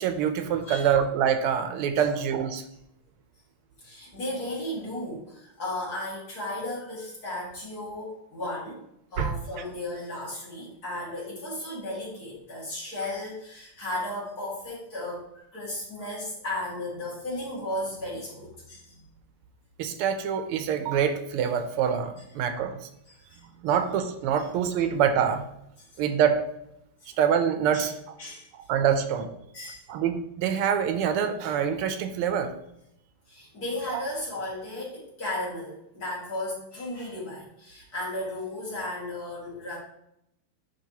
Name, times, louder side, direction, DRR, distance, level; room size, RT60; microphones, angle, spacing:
voice 1, 0.0-2.6 9.2-9.3 19.8-22.9 23.4-25.4 26.0-26.4 27.2-27.9 28.7-29.3 29.9-32.5 33.9-34.0, right 8 dB, 85° right, 8 dB, 1.6 m, -25 dB
voice 2, 3.8-8.8 9.1-19.0 23.1-23.4 24.4-24.5 25.8-25.9 27.7-27.9 28.2-28.5 29.5-29.9 33.3-39.8, left 1 dB, 45° left, -6 dB, 2.5 m, -35 dB
10.0 x 3.4 x 2.8 m, 0.80 s
omnidirectional pair, 2.4 m